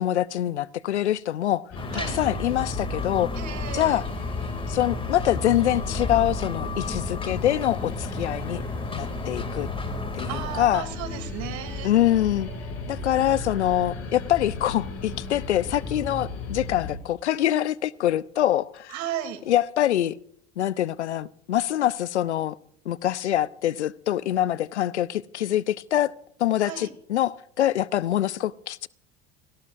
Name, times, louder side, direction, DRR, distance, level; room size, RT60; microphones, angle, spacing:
voice 1, 0.0-1.7 1.9-3.3 3.7-4.0 4.7-8.6 8.9-9.7 10.1-10.9 11.8-12.5 12.9-18.9 19.5-20.1 20.6-22.6 22.9-26.1 26.4-28.9, left 12 dB, 85° left, 0.7 m, -25 dB
sound 1, 1.7-17.0, left 3 dB, 45° left, 7.1 m, -35 dB
sound 2, 1.7-10.6, left 3 dB, 15° left, 2.7 m, -33 dB
voice 2, 3.4-4.0 10.3-11.9 18.9-19.4 26.6-26.9, right 10 dB, 55° right, 3.0 m, -34 dB
28.0 x 18.0 x 2.6 m
hypercardioid pair, 75°, 33 cm